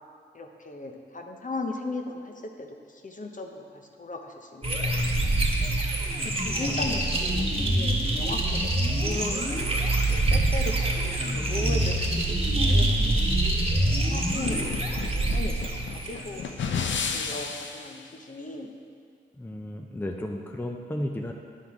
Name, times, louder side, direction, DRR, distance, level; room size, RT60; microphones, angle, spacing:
voice 1, 0.3-2.7 2.9-5.7 6.2-8.7 9.0-9.4 10.1-12.0 12.3-13.6 14.1-18.7, left 2 dB, 45° left, 3 dB, 0.9 m, -37 dB
sound 1, 4.6-16.6, right 1 dB, 30° right, 1.2 m, -25 dB
voice 2, 6.2-7.1 19.4-21.3, left 1 dB, 10° left, 2 dB, 0.6 m, -34 dB
sound 2, 14.1-18.0, left 6 dB, 80° left, 0.5 m, -32 dB
10.0 x 3.8 x 4.8 m, 2.1 s
cardioid pair, 50°, 19 cm